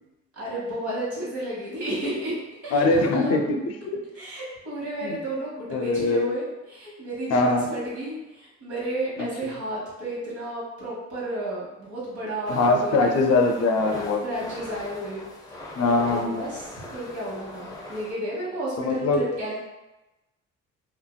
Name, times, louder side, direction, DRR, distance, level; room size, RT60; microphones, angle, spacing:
voice 1, 0.4-2.3 2.6-2.8 3.1-3.4 4.1-13.2 14.2-15.2 16.1-16.6 16.9-19.6, right 1 dB, 75° right, -7 dB, 1.5 m, -32 dB
voice 2, 2.7-3.6 5.0-5.2 5.7-6.3 7.3-7.7 9.2-9.3 12.5-14.2 15.8-16.4 18.8-19.3, left 3 dB, 55° left, 3 dB, 0.5 m, -22 dB
sound 1, 12.4-18.1, left 1 dB, 15° left, 0.6 m, -40 dB
2.8 x 2.7 x 2.2 m, 1.0 s
cardioid pair, 90°, 30 cm